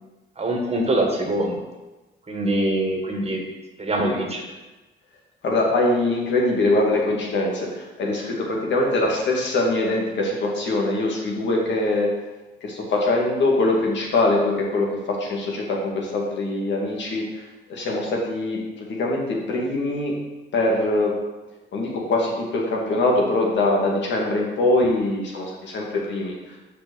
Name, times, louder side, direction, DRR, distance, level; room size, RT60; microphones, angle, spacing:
voice 1, 0.4-1.6 2.3-3.4 3.8-4.4, right 1 dB, 30° right, 1 dB, 1.8 m, -23 dB
voice 2, 5.4-12.1 12.6-17.3 17.7-20.1 20.5-21.2 21.7-26.6, left 2 dB, 65° left, -2 dB, 2.2 m, -23 dB
6.0 x 5.8 x 6.3 m, 1.1 s
cardioid pair, 90°, 20 cm